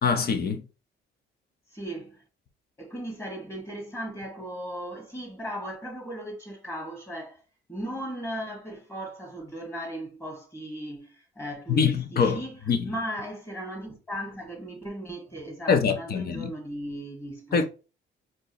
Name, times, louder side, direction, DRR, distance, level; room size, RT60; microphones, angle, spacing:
voice 1, 0.0-0.6 11.7-12.4 12.7-12.9 15.7-16.5 17.5-17.6, left 6 dB, 50° left, 0.9 m, -24 dB
voice 2, 1.7-2.2 2.8-7.4 7.7-17.6, equal, 15° left, 2.0 m, -37 dB
4.4 x 3.0 x 3.0 m
cardioid pair, 90°, 20 cm